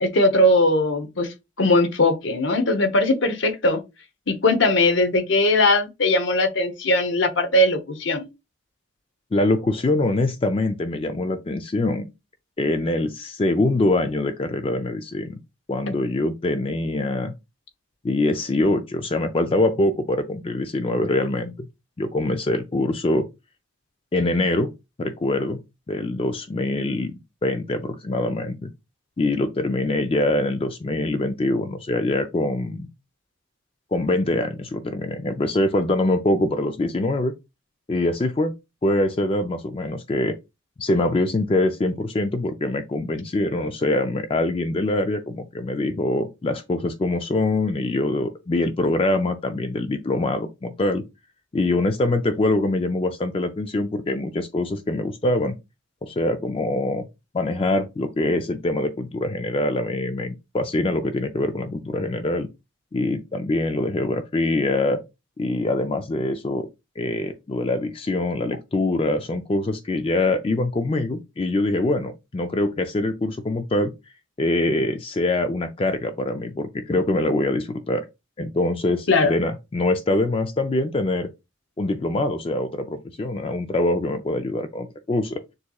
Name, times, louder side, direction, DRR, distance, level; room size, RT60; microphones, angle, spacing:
voice 1, 0.0-3.8 4.3-8.3 79.1-79.4, left 1 dB, 70° left, 0.8 m, -20 dB
voice 2, 9.3-12.1 12.6-15.4 15.7-17.3 18.0-21.5 22.0-23.3 24.1-24.7 25.0-25.6 25.9-27.1 27.4-28.7 29.2-32.9 33.9-37.3 37.9-38.5 38.8-40.4 40.8-51.0 51.5-55.6 56.0-57.1 57.3-62.5 62.9-65.0 65.4-66.7 67.0-73.9 74.4-78.0 78.4-81.3 81.8-85.4, left 2 dB, 30° left, 0.4 m, -24 dB
6.5 x 2.9 x 2.3 m
head